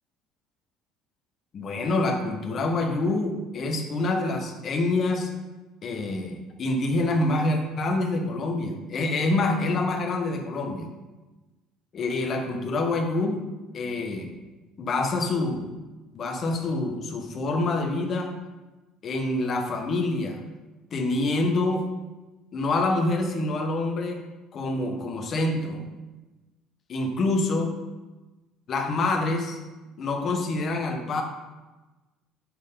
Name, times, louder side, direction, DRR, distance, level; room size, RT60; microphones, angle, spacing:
voice 1, 1.5-5.3 5.8-10.9 11.9-13.4 13.7-14.3 14.8-15.7 16.1-18.3 19.0-20.4 20.9-21.9 22.5-24.2 24.5-25.9 26.9-27.7 28.7-29.6 30.0-31.2, left 2 dB, 35° left, 3 dB, 1.3 m, -26 dB
9.3 x 6.5 x 3.9 m, 1.1 s
cardioid pair, 150°, 0 cm